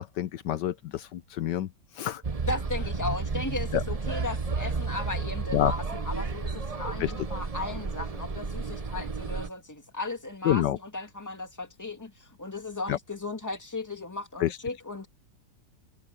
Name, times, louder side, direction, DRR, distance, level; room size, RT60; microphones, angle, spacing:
voice 1, 0.0-1.7 2.0-2.2 3.7-3.8 5.5-5.7 7.0-7.1 10.4-10.8 12.9-13.0 14.4-14.6, left 12 dB, 75° left, 1.3 m, -27 dB
sound 1, 2.2-9.5, right 4 dB, 30° right, 0.8 m, -32 dB
voice 2, 2.4-15.1, left 3 dB, 10° left, 2.0 m, -36 dB
omnidirectional pair, 1.9 m